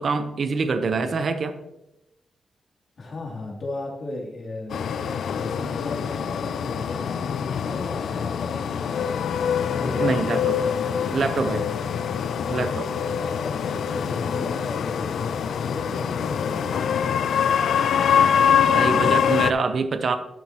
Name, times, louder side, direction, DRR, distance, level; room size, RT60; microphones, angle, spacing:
voice 1, 0.0-1.5 10.0-10.6 11.1-11.7 12.5-12.9 18.7-20.2, right 4 dB, 55° right, 9 dB, 0.8 m, -25 dB
voice 2, 3.0-9.1 9.7-11.2 13.2-17.1, left 2 dB, 50° left, -2 dB, 2.7 m, -36 dB
sound 1, 4.7-19.5, left 7 dB, 85° left, 0.4 m, -24 dB
12.0 x 7.6 x 2.9 m, 0.89 s
wide cardioid pair, 140°, 0 cm